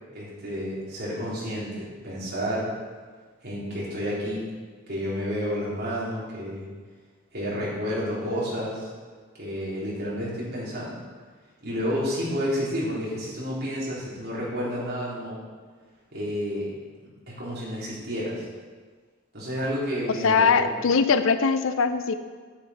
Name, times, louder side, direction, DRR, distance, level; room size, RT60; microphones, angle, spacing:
voice 1, 0.1-2.7 3.4-4.5 4.9-6.7 7.3-8.9 9.4-11.0 11.6-15.4 16.1-16.7 17.4-18.5 19.3-20.8, equal, 50° right, -7 dB, 3.5 m, -30 dB
voice 2, 20.2-22.2, left 5 dB, 70° left, 11 dB, 0.5 m, -21 dB
9.8 x 8.7 x 4.2 m, 1.5 s
head